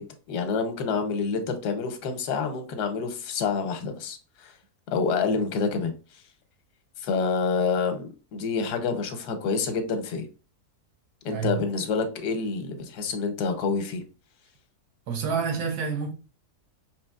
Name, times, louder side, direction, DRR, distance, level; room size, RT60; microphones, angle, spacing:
voice 1, 0.0-4.5 4.9-5.9 7.0-10.3 11.2-14.0, left 5 dB, 90° left, 1.3 m, -28 dB
voice 2, 11.3-11.6 15.1-16.1, right 6 dB, 75° right, 1.4 m, -28 dB
5.0 x 2.9 x 2.2 m
omnidirectional pair, 1.7 m